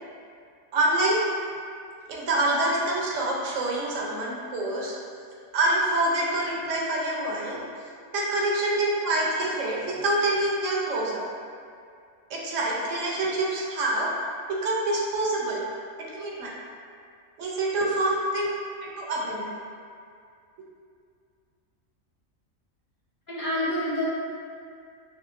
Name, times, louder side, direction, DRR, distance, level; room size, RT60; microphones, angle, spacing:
voice 1, 0.7-1.2 2.1-4.9 5.5-7.6 8.1-11.3 12.3-15.7 16.1-16.5 17.4-18.5 18.8-19.6, right 2 dB, 70° right, -3 dB, 0.9 m, -26 dB
voice 2, 23.3-24.1, left 1 dB, 50° left, -10 dB, 0.7 m, -28 dB
5.5 x 2.1 x 2.4 m, 2.3 s
omnidirectional pair, 1.4 m